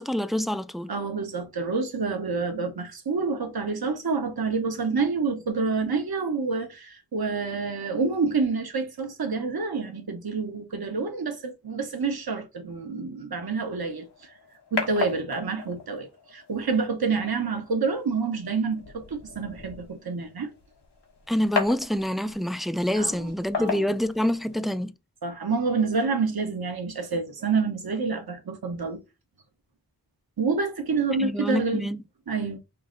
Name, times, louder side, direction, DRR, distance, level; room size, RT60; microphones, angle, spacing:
voice 1, 0.0-0.9 21.3-24.9 31.2-32.0, equal, ahead, 0.3 m, -26 dB
voice 2, 0.9-14.3 14.7-20.5 23.0-23.3 23.6-23.9 25.2-29.0 30.4-31.9 32.3-32.6, right 4 dB, 65° right, 1.1 m, -28 dB
sound 1, 13.8-24.8, left 5 dB, 85° left, 1.3 m, -36 dB
5.7 x 2.1 x 3.8 m
wide cardioid pair, 50°, 40 cm